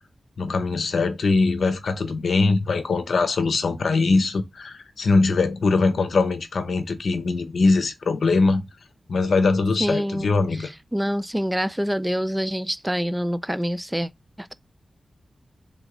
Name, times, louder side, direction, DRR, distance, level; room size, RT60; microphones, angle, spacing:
voice 1, 0.4-8.6 9.1-10.7, left 3 dB, 70° left, 0.8 m, -22 dB
voice 2, 9.8-14.1 14.4-14.5, equal, 5° right, 0.3 m, -26 dB
3.6 x 3.4 x 3.6 m
wide cardioid pair, 115°, 0 cm